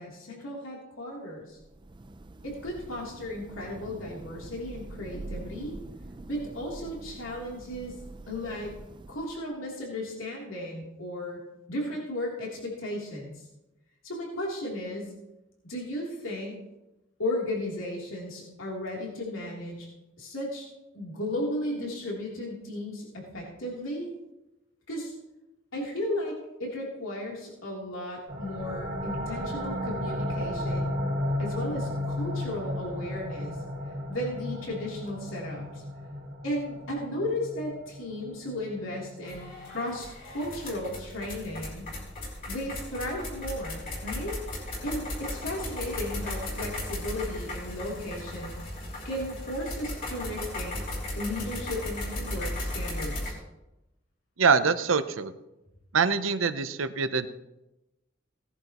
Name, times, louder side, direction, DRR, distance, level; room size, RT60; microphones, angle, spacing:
voice 1, 0.0-1.6 2.4-5.8 6.3-7.9 8.3-8.7 9.1-11.4 11.7-13.4 14.0-15.1 15.6-16.6 17.2-19.9 20.2-20.7 20.9-24.1 24.9-25.1 25.7-31.0 31.4-33.6 34.1-35.8 36.4-41.9 42.5-44.4 44.8-48.6 49.0-50.9 51.2-53.4, left 1 dB, 90° left, -2 dB, 3.2 m, -35 dB
Thunder / Rain, 1.5-9.5, right 2 dB, 25° right, 0.5 m, -45 dB
sound 1, 28.3-39.6, left 1 dB, 50° right, 2.4 m, -34 dB
sound 2, 39.2-53.3, left 1 dB, 45° left, 4.6 m, -36 dB
voice 2, 54.4-55.3 55.9-57.3, right 5 dB, 90° right, 11 dB, 0.8 m, -24 dB
18.0 x 11.0 x 3.0 m, 0.94 s
head